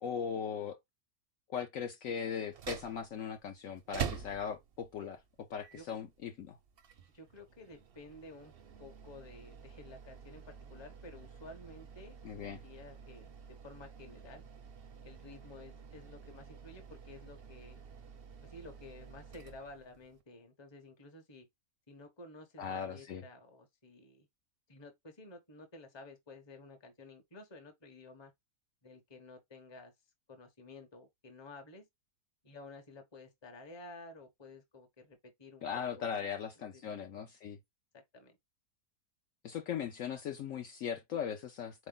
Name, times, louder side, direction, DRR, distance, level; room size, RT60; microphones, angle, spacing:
voice 1, 0.0-0.8 1.5-5.2 5.5-6.6 12.2-12.6 22.6-23.2 35.6-37.6 39.4-41.9, left 7 dB, 65° left, 0.9 m, -39 dB
sound 1, 2.4-20.2, right 7 dB, 55° right, 0.6 m, -47 dB
voice 2, 7.1-8.5 8.8-14.4 15.0-17.8 18.4-21.5 21.9-24.3 24.7-28.3 28.8-29.9 30.3-31.9 32.4-35.7 35.9-36.2 36.7-37.0 37.9-38.4, left 2 dB, 20° left, 0.8 m, -53 dB
4.2 x 2.9 x 3.8 m
omnidirectional pair, 1.7 m